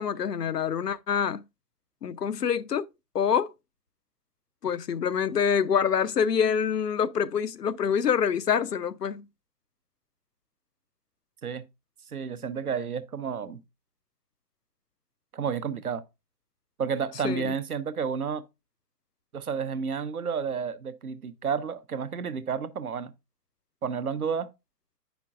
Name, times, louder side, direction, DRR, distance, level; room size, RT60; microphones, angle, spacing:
voice 1, 0.0-1.4 2.0-2.9 3.1-3.5 4.6-9.2 17.2-17.5, left 7 dB, 70° left, 0.6 m, -26 dB
voice 2, 12.1-13.6 15.3-16.0 16.8-18.4 19.3-23.1 23.8-24.5, right 6 dB, 60° right, 0.7 m, -31 dB
8.9 x 5.1 x 2.4 m
figure-of-eight pair, 130°, 49 cm